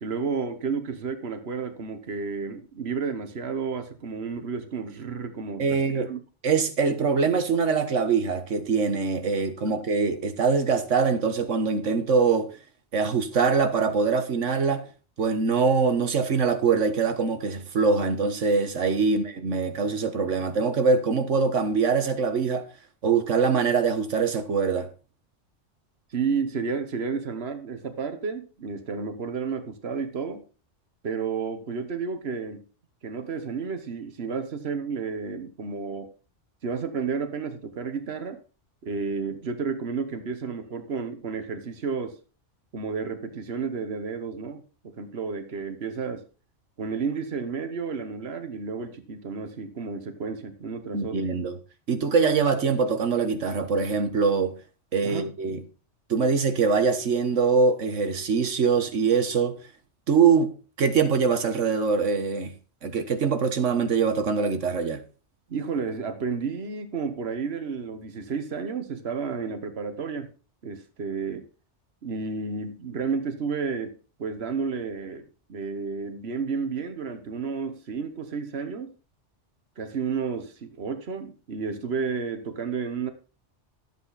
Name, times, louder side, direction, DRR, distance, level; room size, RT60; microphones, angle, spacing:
voice 1, 0.0-6.2 9.7-9.8 26.1-30.4 31.0-32.7 33.0-36.1 36.6-38.4 38.8-42.2 42.7-46.2 46.8-51.2 55.0-55.3 65.5-70.3 70.6-71.5 72.0-78.9 79.8-83.1, right 5 dB, 60° right, 1.5 m, -31 dB
voice 2, 5.6-6.1 6.4-12.5 12.9-14.9 15.2-22.7 23.0-24.9 50.9-51.6 51.9-54.5 54.9-55.6 56.1-59.6 60.1-62.5 62.8-65.0, right 5 dB, 85° right, 1.7 m, -23 dB
12.5 x 8.5 x 4.1 m
omnidirectional pair, 1.2 m